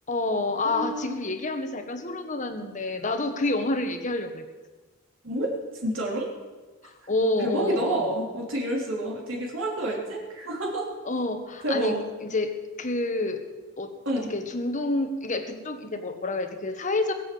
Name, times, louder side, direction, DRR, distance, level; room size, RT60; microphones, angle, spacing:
voice 1, 0.1-4.4 6.8-8.1 11.0-13.4 13.8-17.1, left 2 dB, 35° left, 7 dB, 1.4 m, -28 dB
voice 2, 0.7-1.2 5.2-5.5 5.8-6.3 7.4-10.9 11.6-12.0 14.1-14.3, right 1 dB, 65° right, -2 dB, 3.5 m, -28 dB
21.0 x 7.7 x 7.9 m, 1.3 s
head